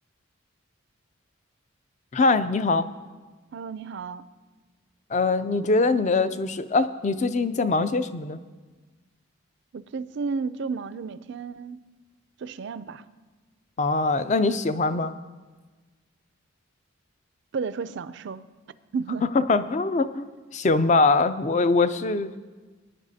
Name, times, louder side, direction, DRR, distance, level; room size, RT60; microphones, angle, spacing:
voice 1, 2.1-2.9 5.1-8.4 13.8-15.1 19.3-22.3, left 3 dB, 35° left, 12 dB, 0.4 m, -23 dB
voice 2, 3.5-4.2 9.7-11.8 12.4-13.0 17.5-18.4 18.9-19.3, right 5 dB, 55° right, 15 dB, 0.4 m, -32 dB
19.5 x 9.9 x 2.7 m, 1.3 s
head